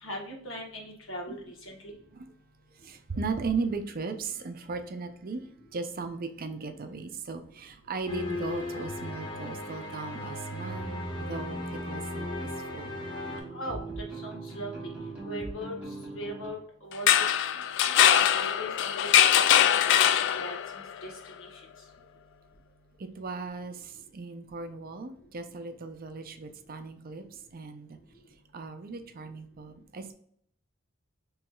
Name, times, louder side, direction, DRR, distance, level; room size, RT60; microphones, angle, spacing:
voice 1, 0.0-1.9 13.5-13.8 14.2-14.9 15.2-15.7 16.1-17.1 17.9-20.0 20.3-20.5 21.0-21.1 21.4-21.6, equal, 85° left, 1 dB, 1.2 m, -39 dB
voice 2, 2.8-5.4 5.7-12.3 12.7-12.9 17.9-18.0 23.0-27.2 27.5-28.0 28.5-30.1, right 4 dB, 45° right, 8 dB, 0.5 m, -37 dB
sound 1, 8.1-13.4, left 1 dB, 25° left, 1.1 m, -36 dB
sound 2, 10.6-16.6, right 2 dB, 5° right, 1.2 m, -42 dB
sound 3, 16.9-20.8, left 10 dB, 65° left, 0.3 m, -22 dB
4.5 x 3.1 x 2.3 m, 0.64 s
head